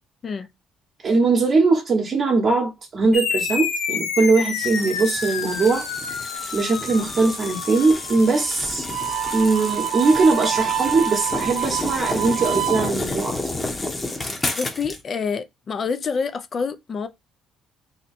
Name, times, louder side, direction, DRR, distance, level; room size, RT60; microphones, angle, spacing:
voice 1, 1.0-5.9 6.5-8.9 9.3-13.4, right 3 dB, 45° right, 0.9 m, -20 dB
sound 1, 3.1-12.0, left 6 dB, 75° left, 0.8 m, -31 dB
sound 2, 4.6-15.0, left 2 dB, 20° left, 0.9 m, -31 dB
Harmonica, 8.9-12.9, right 11 dB, 65° right, 0.4 m, -27 dB
voice 2, 14.5-17.1, left 5 dB, 45° left, 0.5 m, -27 dB
2.8 x 2.2 x 4.0 m
supercardioid pair, 80°, 0 cm